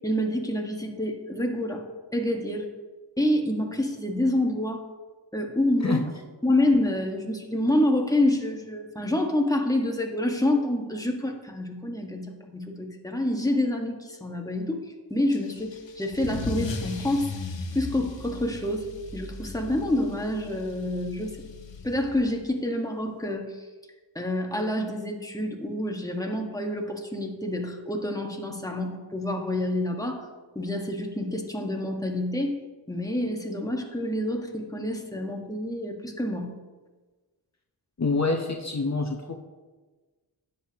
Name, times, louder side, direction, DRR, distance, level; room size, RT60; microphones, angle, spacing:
voice 1, 0.0-1.8 2.1-2.7 3.2-4.8 5.3-6.0 6.4-17.3 17.7-21.4 21.8-23.7 24.1-30.3 30.5-32.6 32.9-36.5, left 1 dB, 10° left, 2 dB, 1.4 m, -27 dB
Car / Engine starting / Accelerating revving vroom, 15.3-22.5, left 4 dB, 70° left, 0.9 m, -37 dB
voice 2, 38.0-39.3, left 3 dB, 35° left, 3 dB, 0.8 m, -26 dB
10.0 x 8.0 x 2.9 m, 1.3 s
cardioid pair, 45°, 46 cm